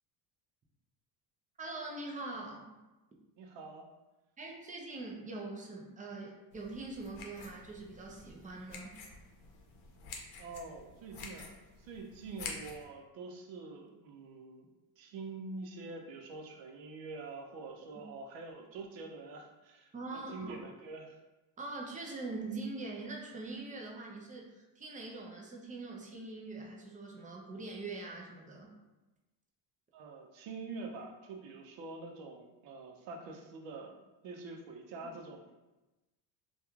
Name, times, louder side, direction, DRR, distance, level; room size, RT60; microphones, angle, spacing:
voice 1, 1.6-2.7 4.4-9.0 17.9-18.0 19.9-20.5 21.6-28.7, right 3 dB, 20° right, -1 dB, 0.4 m, -43 dB
voice 2, 3.4-3.9 10.4-14.7 15.0-21.2 29.9-35.4, right 3 dB, 70° right, 2 dB, 0.6 m, -46 dB
sound 1, 6.5-12.8, left 4 dB, 80° left, 0.7 m, -49 dB
2.9 x 2.3 x 2.3 m, 1.1 s
cardioid pair, 110°, 46 cm